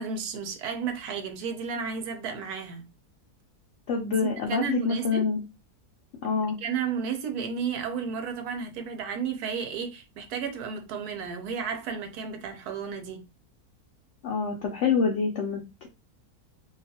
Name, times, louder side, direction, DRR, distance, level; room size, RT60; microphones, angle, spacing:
voice 1, 0.0-2.8 4.2-5.3 6.6-13.2, right 6 dB, 80° right, 1.1 m, -33 dB
voice 2, 3.9-5.4 6.2-6.6 14.2-15.9, left 5 dB, 65° left, 0.7 m, -26 dB
2.8 x 2.4 x 2.7 m
omnidirectional pair, 1.6 m